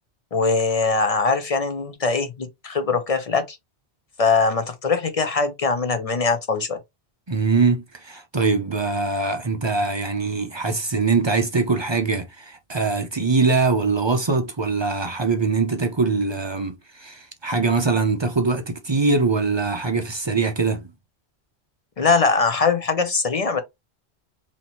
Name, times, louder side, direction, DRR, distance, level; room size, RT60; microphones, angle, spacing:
voice 1, 0.3-3.6 4.2-6.8 22.0-23.6, left 4 dB, 45° left, 0.5 m, -21 dB
voice 2, 7.3-20.9, right 4 dB, 35° right, 0.5 m, -22 dB
4.1 x 2.9 x 2.9 m
omnidirectional pair, 1.1 m